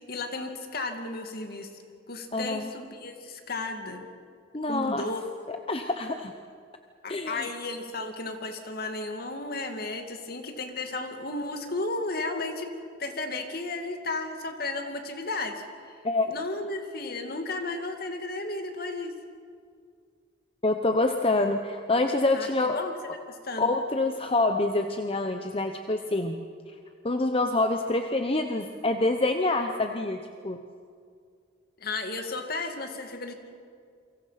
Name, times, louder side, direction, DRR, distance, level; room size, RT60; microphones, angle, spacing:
voice 1, 0.1-1.7 2.1-4.1 4.6-5.2 7.0-12.7 13.0-15.6 15.9-16.0 16.3-19.1 22.3-22.9 23.3-23.7 31.8-33.3, left 2 dB, 55° left, 5 dB, 2.4 m, -34 dB
voice 2, 2.3-2.7 4.5-5.1 5.5-6.3 7.1-7.5 16.0-16.3 20.6-22.8 23.6-26.4 27.0-30.6, left 2 dB, 30° left, 6 dB, 1.0 m, -26 dB
28.5 x 24.5 x 5.9 m, 2.2 s
head